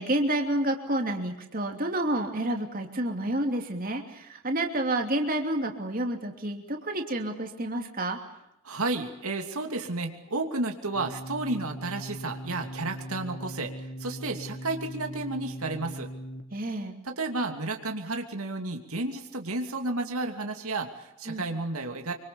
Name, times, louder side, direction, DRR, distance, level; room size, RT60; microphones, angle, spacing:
voice 1, 0.0-8.2 16.5-16.9 21.3-21.5, right 1 dB, 40° right, 3 dB, 2.9 m, -29 dB
voice 2, 8.6-13.7 14.0-16.1 17.0-22.1, right 2 dB, 80° right, 4 dB, 2.8 m, -32 dB
sound 1, 10.9-16.4, equal, 55° left, 3.0 m, -40 dB
26.0 x 25.5 x 7.2 m, 0.84 s
head